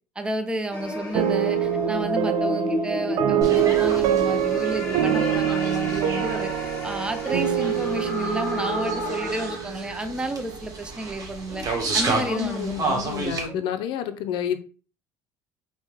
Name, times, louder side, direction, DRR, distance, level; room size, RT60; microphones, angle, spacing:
voice 1, 0.2-6.5 6.8-11.6 11.9-12.7 13.1-13.6, right 1 dB, 10° right, 7 dB, 0.5 m, -31 dB
sound 1, 0.7-9.6, left 1 dB, 30° left, 1.7 m, -31 dB
sound 2, 1.1-10.3, right 10 dB, 75° right, 0.4 m, -25 dB
sound 3, 3.4-13.5, right 3 dB, 40° right, 1.0 m, -32 dB
voice 2, 12.2-14.6, left 9 dB, 70° left, 9 dB, 0.5 m, -29 dB
3.5 x 2.1 x 3.0 m, 0.37 s
supercardioid pair, 100°, 9 cm